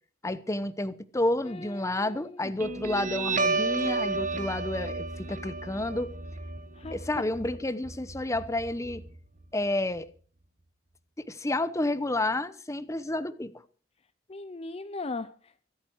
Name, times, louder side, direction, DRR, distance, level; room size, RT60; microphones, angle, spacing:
voice 1, 0.2-6.1 6.9-9.0 9.5-10.1 11.3-13.5, left 1 dB, 15° left, 0.9 m, -30 dB
voice 2, 1.4-2.8 6.7-7.0 14.3-15.7, left 3 dB, 35° left, 0.6 m, -39 dB
Guitar, 2.6-9.6, right 3 dB, 45° right, 1.5 m, -32 dB
24.5 x 8.4 x 4.6 m
head